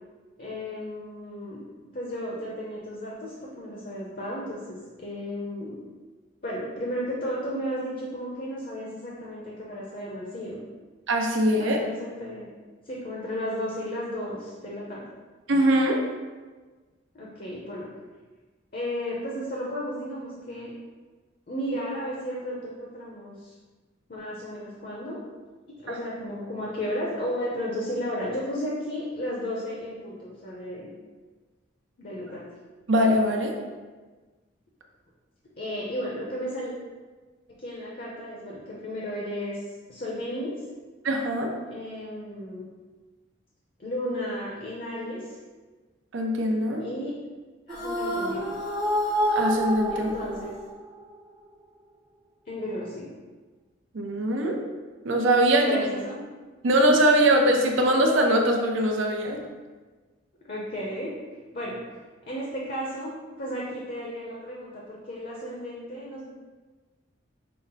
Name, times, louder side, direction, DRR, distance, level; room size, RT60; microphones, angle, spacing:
voice 1, 0.4-1.6 1.9-5.7 6.4-10.6 11.5-12.5 12.8-15.0 17.1-17.9 18.7-20.7 21.5-23.5 24.1-25.2 25.8-30.9 32.0-32.4 35.6-36.7 37.6-40.5 41.7-42.7 43.8-45.4 46.8-47.1 47.7-48.6 49.9-50.5 52.5-53.1 55.6-56.2 60.4-61.1 61.5-61.8 62.3-63.1 63.4-66.3, equal, 45° left, -4 dB, 0.7 m, -34 dB
voice 2, 11.1-11.8 15.5-16.0 25.9-26.0 32.9-33.5 41.0-41.5 46.1-46.8 49.3-50.1 53.9-54.6 55.0-55.8 56.6-59.4, right 1 dB, 75° right, 2 dB, 0.6 m, -22 dB
sound 1, 47.7-51.1, equal, 20° right, 0.6 m, -28 dB
5.6 x 2.0 x 3.9 m, 1.3 s
head